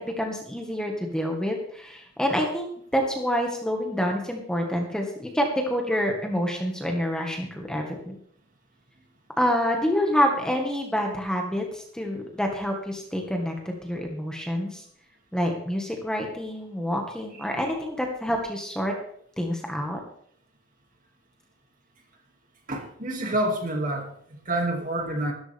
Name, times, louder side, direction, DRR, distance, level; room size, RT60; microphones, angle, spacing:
voice 1, 0.0-8.2 9.4-14.8 15.3-18.9 19.4-20.0, equal, 5° left, 1 dB, 1.6 m, -27 dB
voice 2, 22.7-25.3, right 1 dB, 40° right, 2 dB, 2.4 m, -28 dB
15.0 x 13.5 x 3.5 m, 0.65 s
head